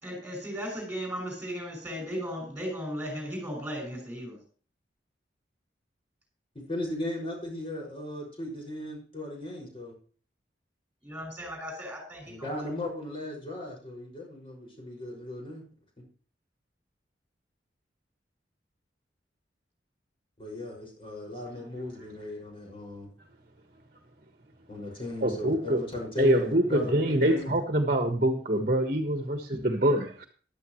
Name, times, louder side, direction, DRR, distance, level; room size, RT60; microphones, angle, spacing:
voice 1, 0.0-4.4 11.0-12.7, equal, 5° right, 2 dB, 6.3 m, -36 dB
voice 2, 6.5-10.0 12.3-15.6 16.0-16.1 20.4-23.1 24.7-27.5 28.5-28.6, left 1 dB, 30° left, 0 dB, 5.9 m, -37 dB
voice 3, 25.2-25.8 26.2-30.2, right 1 dB, 45° right, 5 dB, 1.5 m, -25 dB
15.0 x 12.0 x 3.1 m, 0.41 s
head